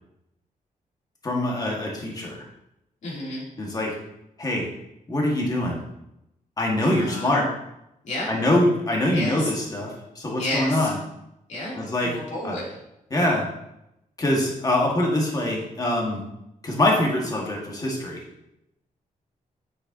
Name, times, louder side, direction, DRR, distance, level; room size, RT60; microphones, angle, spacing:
voice 1, 1.2-2.4 3.6-3.9 4.4-4.7 5.1-5.8 6.6-7.5 8.3-11.0 11.7-12.1 12.4-12.6 13.1-13.4 14.2-16.2 16.6-18.2, left 1 dB, 25° left, -2 dB, 1.6 m, -24 dB
voice 2, 3.0-3.4 7.0-7.3 8.0-8.3 9.1-9.5 10.4-10.9 11.5-11.7 12.0-12.6, left 1 dB, 55° left, -6 dB, 2.9 m, -31 dB
7.9 x 6.5 x 2.8 m, 0.85 s
wide cardioid pair, 155°, 15 cm